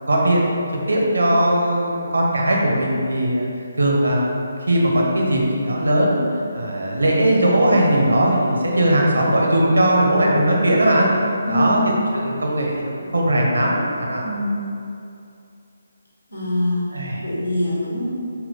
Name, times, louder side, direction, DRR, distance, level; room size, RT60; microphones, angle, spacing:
voice 1, 0.1-0.4 0.9-3.5 3.8-6.3 6.5-11.1 11.5-11.8 12.1-14.2 16.9-17.2, right 1 dB, 65° right, -2 dB, 0.7 m, -19 dB
voice 2, 11.5-11.8 14.2-14.6 16.3-16.8 17.2-18.1, left 1 dB, 80° left, -7 dB, 1.2 m, -23 dB
4.0 x 2.2 x 4.0 m, 2.6 s
figure-of-eight pair, 145°, 0 cm